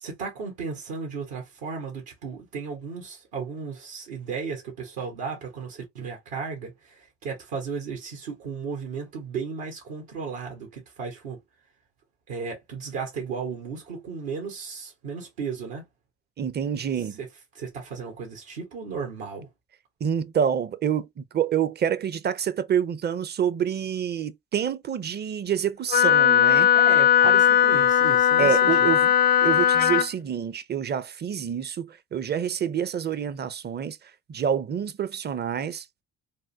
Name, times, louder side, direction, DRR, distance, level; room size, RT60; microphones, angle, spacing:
voice 1, 0.0-11.4 12.3-15.8 17.2-17.3 17.5-19.5 26.7-28.9, right 5 dB, 75° right, 1.2 m, -35 dB
voice 2, 16.4-17.2 20.0-26.7 27.2-27.3 28.4-29.1 29.4-34.0 34.3-35.9, right 8 dB, 30° right, 0.5 m, -27 dB
Wind instrument woodwind instrument, 25.9-30.1, left 9 dB, 25° left, 0.4 m, -18 dB
3.5 x 2.2 x 2.6 m
hypercardioid pair, 50°, 36 cm